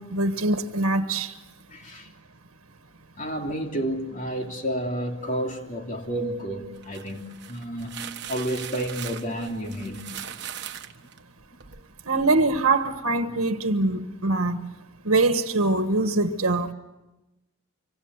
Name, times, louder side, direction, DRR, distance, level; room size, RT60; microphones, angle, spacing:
voice 1, 0.0-1.3 12.1-14.7 15.0-16.7, right 2 dB, 85° right, 1.4 m, -23 dB
voice 2, 1.7-2.1 3.2-10.2, right 1 dB, 35° left, 3.1 m, -31 dB
sound 1, 6.8-11.9, right 9 dB, 55° right, 1.4 m, -39 dB
26.0 x 24.5 x 8.2 m
head